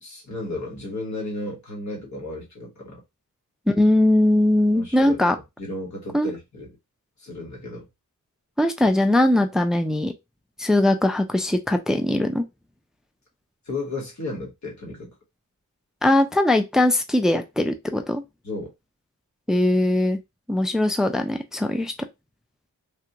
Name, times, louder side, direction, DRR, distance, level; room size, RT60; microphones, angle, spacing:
voice 1, 0.0-3.0 4.7-5.2 5.6-6.7 7.2-7.8 13.6-15.1 18.4-18.7, left 2 dB, 55° left, 1.5 m, -33 dB
voice 2, 3.7-5.4 6.1-6.3 8.6-10.1 10.6-12.5 16.0-18.2 19.5-20.2 20.5-21.9, left 1 dB, ahead, 0.3 m, -20 dB
3.4 x 2.4 x 2.8 m
wide cardioid pair, 150°, 33 cm